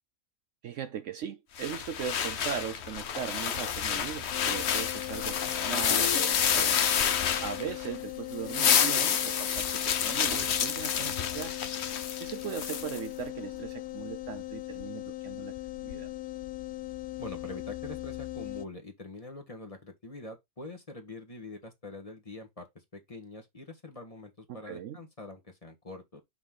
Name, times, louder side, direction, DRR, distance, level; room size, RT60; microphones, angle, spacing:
voice 1, 0.6-6.8 7.4-11.5 12.2-15.5 15.8-16.1 24.5-25.0, right 8 dB, 65° right, 0.9 m, -39 dB
sound 1, 1.6-8.0 8.3-13.0, left 8 dB, 55° left, 1.0 m, -29 dB
sound 2, 4.3-18.7, left 17 dB, 80° left, 1.1 m, -39 dB
voice 2, 17.2-26.2, left 2 dB, 25° left, 1.5 m, -44 dB
5.9 x 4.4 x 3.8 m
omnidirectional pair, 1.5 m